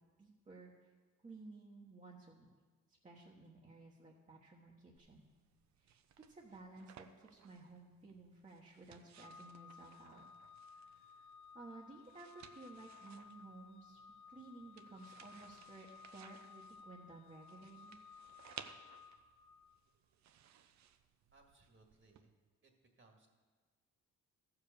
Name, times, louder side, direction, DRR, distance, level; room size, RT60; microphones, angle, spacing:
voice 1, 0.2-0.9 1.2-2.5 3.0-5.3 5.8-6.0 6.3-10.2 10.7-11.3 11.5-14.0 14.3-18.0, right 3 dB, 25° right, -3 dB, 1.2 m, -56 dB
sound 1, 5.0-22.2, right 9 dB, 65° right, 0.7 m, -60 dB
Organ, 9.1-19.9, left 6 dB, 85° left, 0.7 m, -58 dB
voice 2, 21.3-22.3 22.6-23.3, right 3 dB, 40° right, 2 dB, 1.8 m, -67 dB
14.0 x 4.9 x 6.6 m, 1.4 s
cardioid pair, 90°, 30 cm